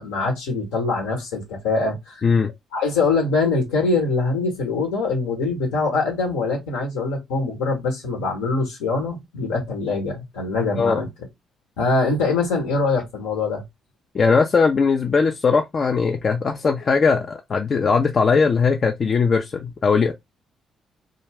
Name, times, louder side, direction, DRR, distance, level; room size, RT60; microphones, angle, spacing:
voice 1, 0.0-2.2 2.7-11.1 11.8-13.6, left 3 dB, 80° left, 0.9 m, -23 dB
voice 2, 14.1-20.1, left 5 dB, 45° left, 0.4 m, -19 dB
2.4 x 2.0 x 3.2 m
hypercardioid pair, 50°, 0 cm